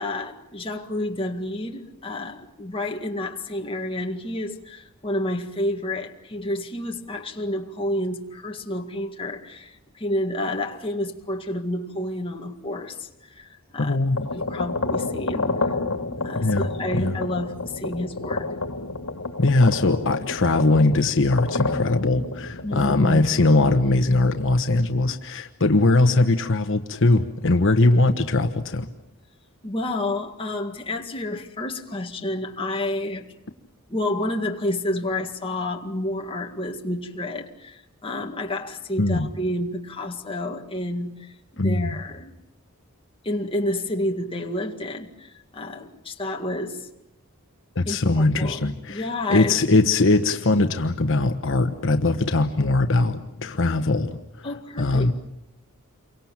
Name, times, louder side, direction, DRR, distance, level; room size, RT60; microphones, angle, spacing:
voice 1, 0.0-13.5 13.7-14.0 14.3-15.5 16.2-18.5 22.6-23.3 29.6-33.3 33.9-42.4 43.2-46.9 47.9-49.6 54.4-55.1, left 1 dB, 25° left, 2.0 m, -30 dB
voice 2, 13.8-14.3 16.4-16.7 16.9-17.1 19.4-28.9 39.0-39.3 41.6-41.9 47.7-49.0 49.3-54.5 54.8-55.1, left 2 dB, 60° left, 1.1 m, -20 dB
sound 1, 14.0-23.8, left 3 dB, 80° left, 2.0 m, -30 dB
28.5 x 24.0 x 7.4 m
head